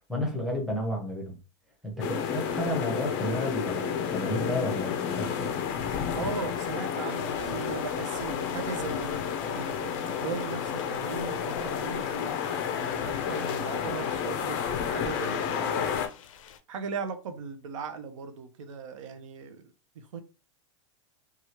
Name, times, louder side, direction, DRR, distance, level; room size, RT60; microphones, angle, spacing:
voice 1, 0.1-1.4 1.8-5.6, left 1 dB, ahead, 0.7 m, -32 dB
sound 1, 2.0-16.1, left 7 dB, 30° left, 0.4 m, -31 dB
sound 2, 5.4-11.4, right 1 dB, 30° right, 1.0 m, -52 dB
voice 2, 6.1-12.0 12.7-14.6 14.9-16.0 16.7-20.2, right 5 dB, 80° right, 0.6 m, -38 dB
sound 3, 7.1-16.6, left 8 dB, 90° left, 0.5 m, -46 dB
2.9 x 2.3 x 2.8 m
supercardioid pair, 165°, 16 cm